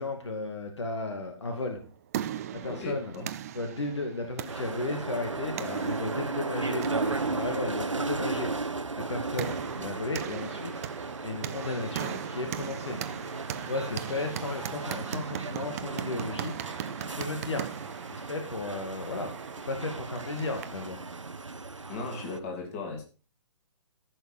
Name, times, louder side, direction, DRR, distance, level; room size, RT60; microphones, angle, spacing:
voice 1, 0.0-1.8 2.5-3.1 3.5-10.8 11.2-13.0 13.7-16.5 17.0-17.6 18.1-19.3 19.7-21.0, left 2 dB, 60° left, 5 dB, 2.1 m, -34 dB
sound 1, 1.7-20.9, right 11 dB, 30° right, 0.6 m, -40 dB
voice 2, 2.7-3.3 21.9-23.0, left 3 dB, 30° left, 3 dB, 3.1 m, -37 dB
sound 2, 4.5-22.4, right 3 dB, 75° right, 1.1 m, -35 dB
14.5 x 6.4 x 4.9 m, 0.36 s
figure-of-eight pair, 130°, 16 cm